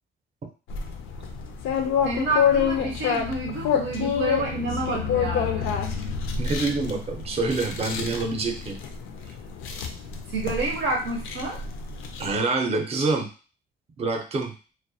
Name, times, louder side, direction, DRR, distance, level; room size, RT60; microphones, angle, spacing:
sound 1, 0.7-12.4, left 7 dB, 90° left, 0.4 m, -28 dB
voice 1, 2.0-5.7 10.3-11.6, right 2 dB, 85° right, 1 dB, 0.6 m, -29 dB
voice 2, 6.4-8.8 9.3-9.4 12.2-13.3 14.0-14.5, right 3 dB, 30° right, 4 dB, 0.5 m, -26 dB
2.2 x 2.1 x 2.6 m, 0.36 s
cardioid pair, 90°, 20 cm